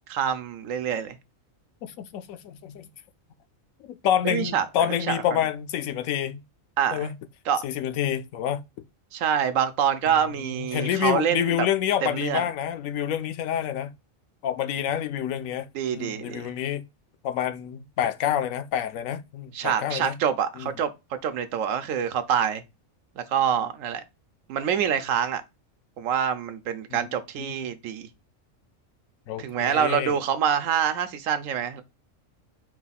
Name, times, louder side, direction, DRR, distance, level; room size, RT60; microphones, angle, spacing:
voice 1, 0.1-1.2 4.2-5.2 6.8-7.1 7.5-7.6 9.1-11.7 12.0-12.4 15.7-16.5 19.5-20.9 21.2-22.6 23.2-24.0 24.5-25.4 26.0-28.1 29.4-31.8, right 8 dB, 80° right, 1.0 m, -26 dB
voice 2, 1.8-2.9 3.9-6.4 6.9-7.1 7.6-8.6 10.4-13.9 14.4-16.9 17.2-20.2 20.6-20.7 26.9-27.1 27.4-27.7 29.3-30.2, left 10 dB, 80° left, 1.0 m, -28 dB
4.5 x 2.4 x 4.0 m
omnidirectional pair, 1.4 m